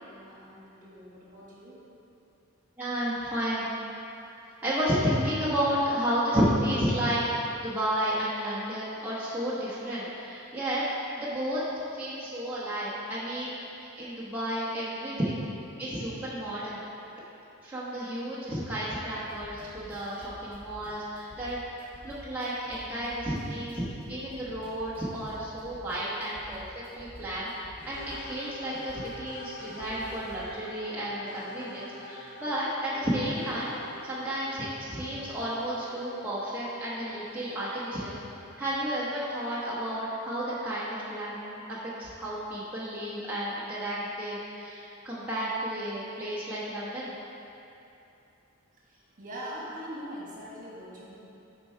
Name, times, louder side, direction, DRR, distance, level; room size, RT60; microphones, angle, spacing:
voice 1, 0.0-1.9 48.8-51.1, equal, 40° right, -5 dB, 1.5 m, -42 dB
voice 2, 2.8-3.7 4.6-7.2 7.6-10.8 11.2-11.6 11.9-15.5 15.8-16.8 17.6-21.6 22.0-26.6 26.9-27.5 27.8-33.7 34.0-38.2 38.6-47.1, equal, 10° right, -10 dB, 1.0 m, -32 dB
sound 1, 19.2-29.3 29.7-30.5, equal, 10° left, 1.4 m, -49 dB
sound 2, 27.9-40.0, left 1 dB, 55° left, 0.7 m, -46 dB
7.9 x 4.5 x 4.6 m, 2.9 s
head